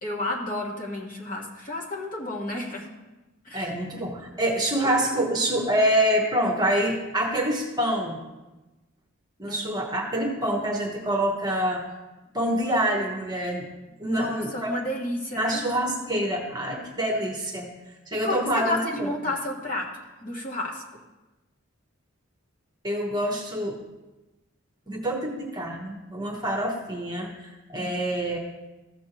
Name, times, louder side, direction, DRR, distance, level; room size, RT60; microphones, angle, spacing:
voice 1, 0.0-2.9 3.4-3.7 9.5-9.6 14.0-15.6 18.2-19.9 20.2-20.8 27.7-27.9, left 1 dB, 40° left, -2 dB, 1.5 m, -31 dB
voice 2, 3.5-8.2 9.4-11.8 12.3-13.7 14.0-14.7 15.4-17.7 18.1-19.1 22.8-23.8 24.9-28.4, right 1 dB, 20° right, 0 dB, 1.0 m, -26 dB
14.5 x 6.3 x 3.0 m, 1.1 s
head